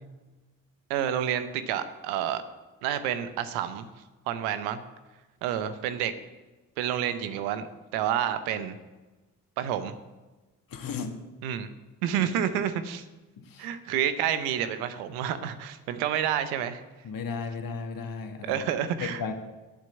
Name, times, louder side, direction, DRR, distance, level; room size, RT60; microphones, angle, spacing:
voice 1, 0.9-2.4 2.8-3.9 4.3-4.8 5.4-6.1 6.8-7.7 7.9-8.8 9.6-9.9 11.4-11.7 12.0-13.0 13.6-16.8 18.4-19.2, right 10 dB, 85° right, 11 dB, 0.8 m, -29 dB
voice 2, 10.7-11.1 13.4-13.7 17.0-18.6 19.0-19.3, left 5 dB, 60° left, 6 dB, 1.6 m, -34 dB
9.0 x 7.6 x 7.6 m, 1.2 s
hypercardioid pair, 40°, 39 cm